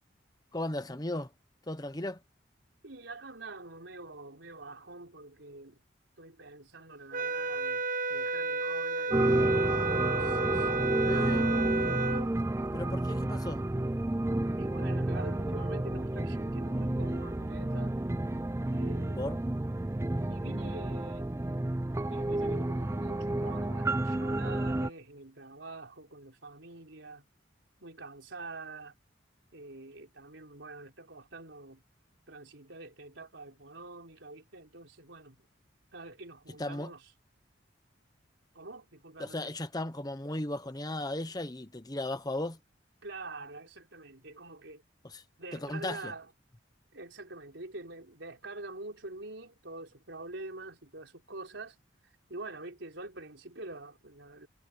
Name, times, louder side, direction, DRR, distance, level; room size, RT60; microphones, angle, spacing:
voice 1, 0.5-1.3 1.7-2.2 11.0-11.4 12.7-13.6 19.2-19.4 36.6-36.9 39.2-42.6 45.1-45.2 45.5-46.1, left 1 dB, 20° left, 1.2 m, -36 dB
voice 2, 2.8-5.8 6.2-9.5 9.8-11.8 14.6-18.0 18.7-19.5 20.3-21.6 22.1-27.3 27.8-29.0 29.5-31.8 32.3-35.5 35.9-37.1 38.5-39.5 43.0-44.8 45.4-46.3 46.9-51.8 52.0-54.5, right 2 dB, 85° right, 4.0 m, -46 dB
sound 1, 7.1-12.3, right 3 dB, 45° right, 1.3 m, -32 dB
sound 2, 9.1-24.9, right 1 dB, 15° right, 0.4 m, -30 dB
head